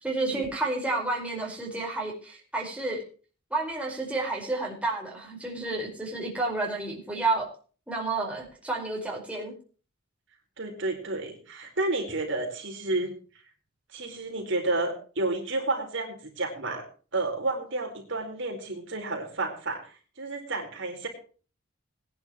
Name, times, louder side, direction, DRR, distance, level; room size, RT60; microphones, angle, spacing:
voice 1, 0.0-3.0 3.5-7.5 7.9-9.5, right 2 dB, 5° right, -2 dB, 4.7 m, -30 dB
voice 2, 10.6-13.1 13.9-16.8 17.1-21.1, right 2 dB, 60° right, 2 dB, 4.4 m, -31 dB
20.5 x 11.0 x 3.1 m, 0.38 s
head